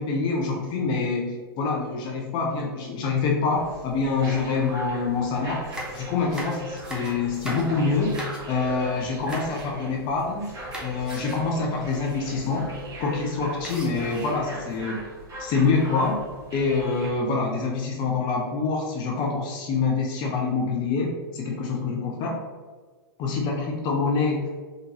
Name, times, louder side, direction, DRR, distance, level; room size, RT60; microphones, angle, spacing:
voice 1, 0.0-5.6 5.9-8.1 8.5-10.5 10.8-12.7 13.0-15.0 15.4-16.2 16.5-22.4 23.2-24.5, left 4 dB, 35° left, 0 dB, 0.6 m, -26 dB
sound 1, 3.5-17.1, right 1 dB, 25° right, 1.2 m, -39 dB
sound 2, 5.5-8.7 9.2-9.7 10.0-10.4 10.7-11.5 11.9-12.0 12.2-12.4 13.6-14.5 15.2-15.8, right 1 dB, 5° right, 0.8 m, -39 dB
3.7 x 2.5 x 2.9 m, 1.4 s
figure-of-eight pair, 100°, 13 cm